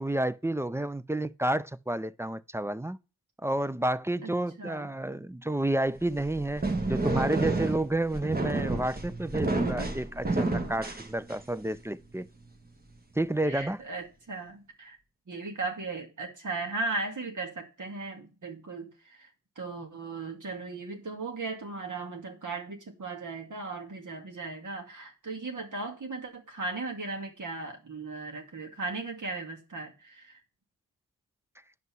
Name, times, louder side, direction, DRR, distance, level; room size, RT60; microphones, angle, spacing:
voice 1, 0.0-3.0 3.4-12.3 13.2-13.8, right 1 dB, 10° right, 0.4 m, -30 dB
voice 2, 4.6-4.9 13.5-15.0 15.3-19.3 19.6-30.4, right 3 dB, 60° right, 2.5 m, -37 dB
sound 1, 6.0-11.7, right 2 dB, 25° right, 1.5 m, -30 dB
9.4 x 5.6 x 6.2 m
cardioid pair, 60°, 35 cm